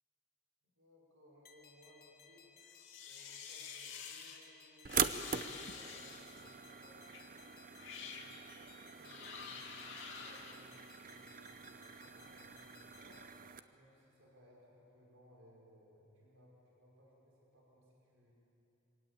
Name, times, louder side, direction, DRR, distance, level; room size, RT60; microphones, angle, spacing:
voice 1, 0.8-2.5 3.0-7.5 7.9-8.7 9.0-13.2 13.7-18.3, equal, 85° right, -3 dB, 5.4 m, -63 dB
sound 1, 1.4-13.3, left 6 dB, 50° left, 1.5 m, -62 dB
sound 2, 2.6-4.4 4.9-6.4 7.1-7.3 7.7-8.3 9.0-10.5, left 6 dB, 70° left, 2.3 m, -49 dB
sound 3, 4.9-13.6, right 7 dB, 45° right, 0.7 m, -43 dB
24.0 x 17.5 x 8.8 m, 3.0 s
head